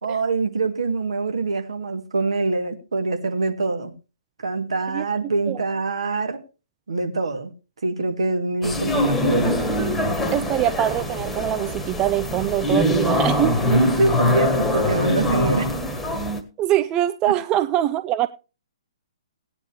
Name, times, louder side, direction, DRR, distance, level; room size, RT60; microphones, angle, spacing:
voice 1, 0.0-3.9 4.4-6.4 6.9-7.5 7.8-9.6 13.0-13.1 13.5-15.8 17.3-17.4, right 3 dB, 65° right, 2.1 m, -24 dB
sound 1, 8.6-16.4, left 1 dB, 5° left, 1.5 m, -23 dB
voice 2, 10.3-13.6 16.6-18.3, right 12 dB, 20° right, 0.5 m, -23 dB
17.5 x 9.7 x 3.0 m
figure-of-eight pair, 125°, 3 cm